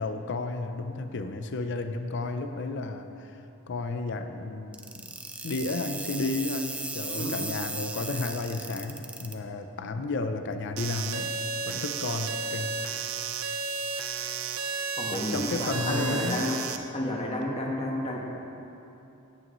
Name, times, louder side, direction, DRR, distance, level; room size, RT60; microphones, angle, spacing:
voice 1, 0.0-3.3 3.7-5.1 5.4-12.7 15.3-16.4, left 3 dB, 55° left, 7 dB, 0.5 m, -32 dB
sound 1, 4.7-9.3, right 2 dB, 5° right, 0.5 m, -36 dB
sound 2, 10.8-16.8, right 5 dB, 85° right, 0.6 m, -33 dB
voice 2, 15.0-16.6 16.9-18.2, left 1 dB, 30° left, -1 dB, 1.3 m, -31 dB
16.0 x 8.7 x 3.1 m, 2.9 s
head